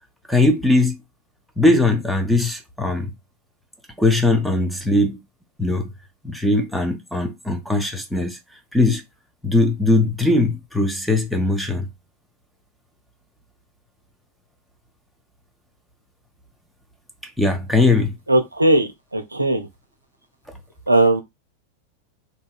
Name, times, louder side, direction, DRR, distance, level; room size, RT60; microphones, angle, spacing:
voice 1, 0.3-1.0 1.6-3.1 4.0-5.2 5.6-5.9 6.2-8.4 8.7-9.0 9.4-11.9 17.4-18.1, left 2 dB, ahead, 0.6 m, -19 dB
voice 2, 18.3-19.7 20.9-21.2, right 1 dB, 85° right, 0.4 m, -18 dB
2.7 x 2.7 x 2.3 m
figure-of-eight pair, 90°, 0 cm